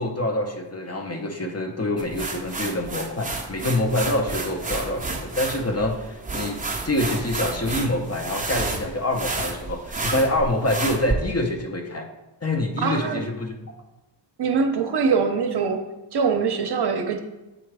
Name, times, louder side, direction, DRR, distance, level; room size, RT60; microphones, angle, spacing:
voice 1, 0.0-12.1 12.4-13.5, left 1 dB, 35° left, 3 dB, 0.7 m, -26 dB
sound 1, 2.0-11.1, right 3 dB, 15° right, 0.7 m, -31 dB
voice 2, 12.8-13.2 14.4-15.8 16.1-17.2, right 5 dB, 60° right, 5 dB, 0.7 m, -23 dB
7.6 x 3.8 x 4.7 m, 1.0 s
wide cardioid pair, 145°, 46 cm